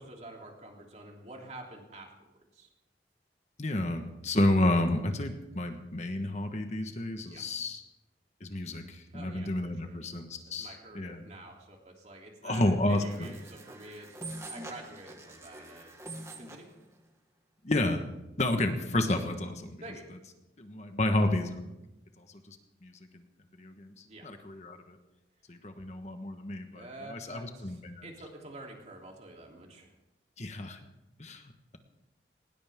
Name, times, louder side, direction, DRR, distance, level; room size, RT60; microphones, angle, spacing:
voice 1, 0.0-2.3 2.5-2.7 7.2-7.4 9.1-10.0 10.6-14.2 14.5-15.9 16.4-16.7 19.8-20.1 24.0-24.3 26.7-29.9, right 2 dB, 40° right, 0 dB, 3.2 m, -48 dB
voice 2, 3.6-7.8 8.4-11.2 12.4-13.3 17.6-18.0 18.4-19.8 20.6-21.7 22.2-23.3 23.6-25.0 25.5-28.0 30.4-30.8 31.2-31.4, left 1 dB, 40° left, 6 dB, 1.3 m, -31 dB
sound 1, 12.9-16.7, right 2 dB, 15° right, 1.7 m, -45 dB
19.5 x 19.5 x 3.7 m, 0.95 s
head